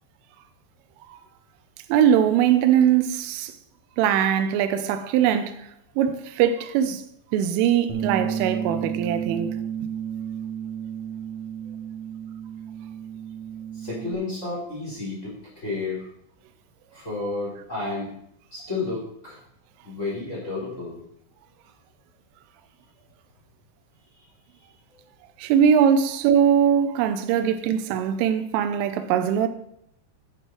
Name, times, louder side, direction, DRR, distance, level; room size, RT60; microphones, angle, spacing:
voice 1, 1.9-3.5 4.0-5.7 6.0-7.0 7.3-9.5 25.4-29.5, right 9 dB, 90° right, 3.3 m, -21 dB
Bass guitar, 7.9-14.1, right 8 dB, 50° right, 2.3 m, -32 dB
voice 2, 13.7-16.1 16.9-18.1 18.5-19.4 19.8-21.0, left 3 dB, 15° left, 3.6 m, -31 dB
10.5 x 9.1 x 4.6 m
omnidirectional pair, 5.5 m